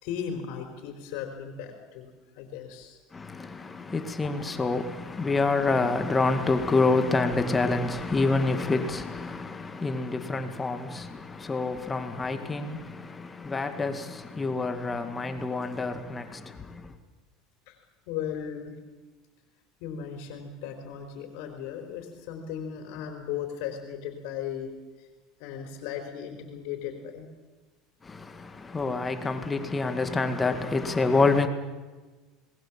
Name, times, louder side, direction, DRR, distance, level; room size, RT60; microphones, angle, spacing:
voice 1, 0.0-2.1 2.4-3.0 17.7-17.8 18.1-18.7 19.8-24.7 25.0-25.1 25.4-27.3, left 8 dB, 70° left, 4.0 m, -36 dB
voice 2, 3.1-16.9 28.0-31.5, left 3 dB, 15° left, 2.0 m, -27 dB
27.0 x 20.0 x 7.4 m
supercardioid pair, 145°, 0 cm